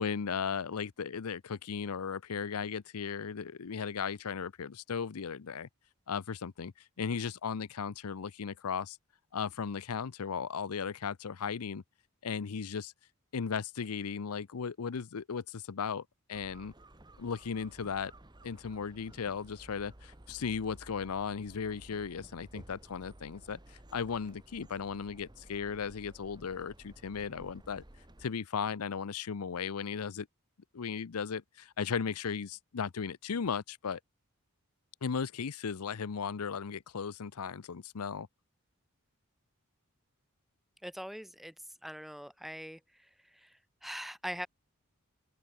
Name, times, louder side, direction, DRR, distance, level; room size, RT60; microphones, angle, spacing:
voice 1, 0.0-5.7 6.1-9.0 9.3-11.8 12.2-12.9 13.3-16.7 17.2-18.1 18.4-27.8 28.2-30.3 30.7-34.0 35.0-38.3, left 6 dB, 90° left, 0.6 m, -36 dB
sound 1, 16.3-28.3, right 1 dB, 20° right, 1.3 m, -55 dB
voice 2, 40.8-41.5 41.8-43.1 43.3-44.5, equal, ahead, 0.5 m, -42 dB
open air
head